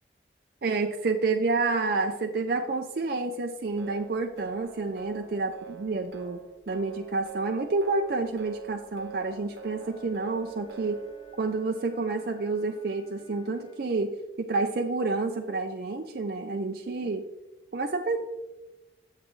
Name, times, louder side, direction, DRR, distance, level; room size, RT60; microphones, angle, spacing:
voice 1, 0.6-11.0 11.4-17.2 17.7-18.2, right 3 dB, 55° right, 4 dB, 0.4 m, -29 dB
sound 1, 3.6-11.6, right 7 dB, 75° right, 1.0 m, -45 dB
Wind instrument woodwind instrument, 9.2-13.9, left 1 dB, 30° left, 2.7 m, -55 dB
8.0 x 7.4 x 3.1 m, 1.0 s
head